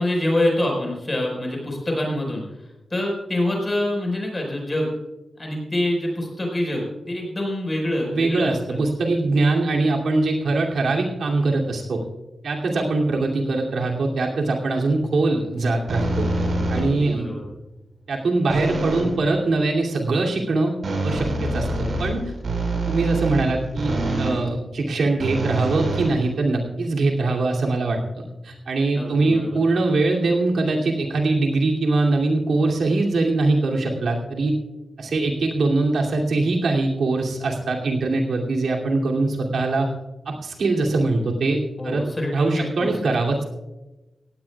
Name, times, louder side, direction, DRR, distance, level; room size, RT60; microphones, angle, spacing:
voice 1, 0.0-4.9 5.4-8.8 16.7-17.4 24.1-24.4 28.9-29.6 41.8-43.1, left 1 dB, 20° left, 0 dB, 4.9 m, -26 dB
voice 2, 8.1-12.0 12.4-16.3 16.7-17.3 18.1-20.7 21.0-22.3 22.9-34.5 35.0-39.9 40.3-42.0 42.3-43.4, right 3 dB, 80° right, -1 dB, 2.8 m, -22 dB
sound 1, 15.9-17.1 18.5-19.2 20.8-24.4 25.2-26.7, right 2 dB, 60° right, 4.8 m, -26 dB
17.5 x 17.0 x 2.4 m, 1.0 s
wide cardioid pair, 160°, 0 cm